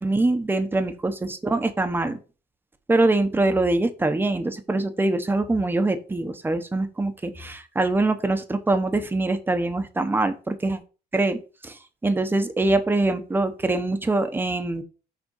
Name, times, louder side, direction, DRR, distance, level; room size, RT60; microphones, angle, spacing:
voice 1, 0.0-2.2 2.9-10.8 11.1-11.4 11.6-11.8 12.0-14.8, right 2 dB, 10° right, 8 dB, 1.0 m, -23 dB
6.4 x 4.3 x 5.5 m, 0.35 s
cardioid pair, 110°, 17 cm